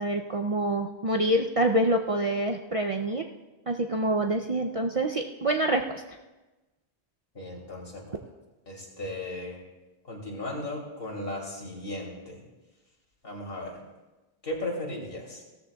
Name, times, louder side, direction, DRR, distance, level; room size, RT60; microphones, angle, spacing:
voice 1, 0.0-3.3 3.7-6.0, right 1 dB, 45° right, 3 dB, 0.5 m, -26 dB
voice 2, 7.3-8.2 8.7-9.6 10.0-12.4 13.2-13.8 14.4-15.4, left 1 dB, 65° left, -2 dB, 3.0 m, -36 dB
16.5 x 14.0 x 2.3 m, 1.1 s
omnidirectional pair, 1.1 m